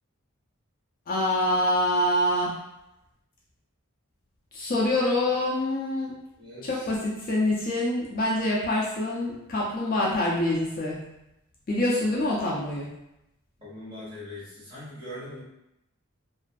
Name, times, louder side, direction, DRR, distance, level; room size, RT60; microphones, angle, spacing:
voice 1, 1.1-2.5 4.5-6.2 6.6-11.0 11.7-12.9, left 1 dB, 40° left, -4 dB, 0.3 m, -25 dB
voice 2, 6.4-6.9 13.6-15.4, left 1 dB, 25° right, -12 dB, 1.4 m, -41 dB
2.4 x 2.4 x 2.2 m, 0.88 s
head